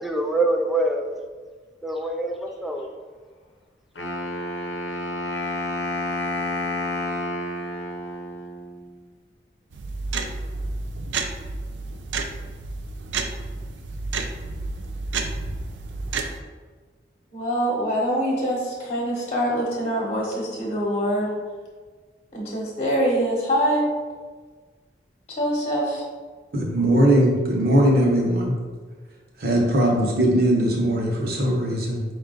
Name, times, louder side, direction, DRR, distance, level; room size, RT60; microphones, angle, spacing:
voice 1, 0.0-1.2 1.8-3.0, right 2 dB, ahead, 2 dB, 0.3 m, -25 dB
Wind instrument woodwind instrument, 4.0-8.9, left 1 dB, 90° left, 0.8 m, -30 dB
sound 1, 9.7-16.4, right 3 dB, 85° right, 0.4 m, -30 dB
voice 2, 17.3-21.3 22.3-23.9 25.4-26.0, equal, 35° left, -3 dB, 1.0 m, -24 dB
voice 3, 26.5-28.6 29.4-32.0, right 1 dB, 55° right, -1 dB, 0.9 m, -20 dB
5.5 x 2.3 x 3.8 m, 1.5 s
head